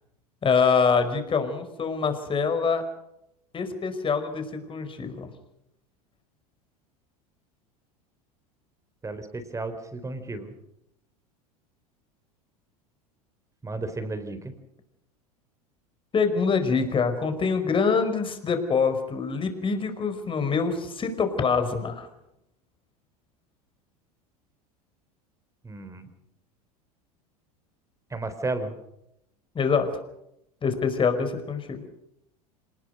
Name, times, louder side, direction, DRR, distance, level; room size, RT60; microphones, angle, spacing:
voice 1, 0.4-2.8 3.5-5.3 16.1-22.1 29.5-29.9 30.6-31.8, left 5 dB, 25° left, 8 dB, 4.9 m, -25 dB
voice 2, 9.0-10.5 13.6-14.5 25.6-26.1 28.1-28.8, right 2 dB, 15° right, 10 dB, 4.2 m, -33 dB
26.5 x 19.5 x 6.5 m, 0.81 s
hypercardioid pair, 85°, 19 cm